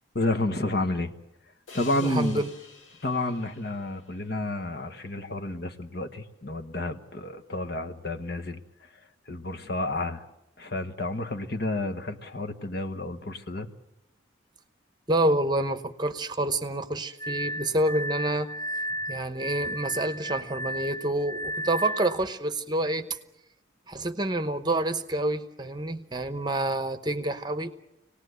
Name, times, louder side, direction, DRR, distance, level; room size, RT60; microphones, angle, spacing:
voice 1, 0.1-1.1 1.7-2.4 3.0-8.6 9.3-10.2 10.6-13.7, left 2 dB, 55° left, 9 dB, 1.3 m, -30 dB
sound 1, 1.7-5.0, left 4 dB, 85° left, 2.1 m, -49 dB
voice 2, 2.0-2.5 15.1-18.5 19.1-23.1 23.9-27.7, right 1 dB, 20° right, 10 dB, 0.9 m, -28 dB
Glass, 17.2-22.2, equal, 15° left, 0.9 m, -34 dB
26.5 x 18.5 x 8.1 m, 0.89 s
head